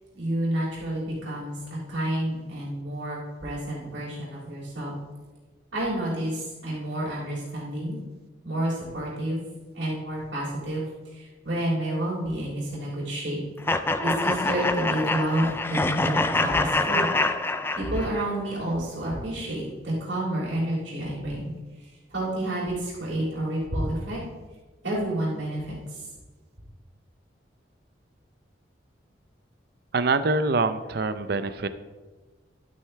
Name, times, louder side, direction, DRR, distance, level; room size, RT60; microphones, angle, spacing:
voice 1, 0.1-1.6 1.9-4.9 5.7-8.0 8.4-9.4 9.7-13.4 14.0-17.1 17.7-21.5 21.8-24.2 24.8-26.1, right 1 dB, 85° right, -9 dB, 3.4 m, -29 dB
sound 1, 13.7-18.3, left 2 dB, 10° left, 0.4 m, -25 dB
voice 2, 29.9-31.7, right 3 dB, 55° right, 12 dB, 0.5 m, -25 dB
11.5 x 9.1 x 3.4 m, 1.3 s
head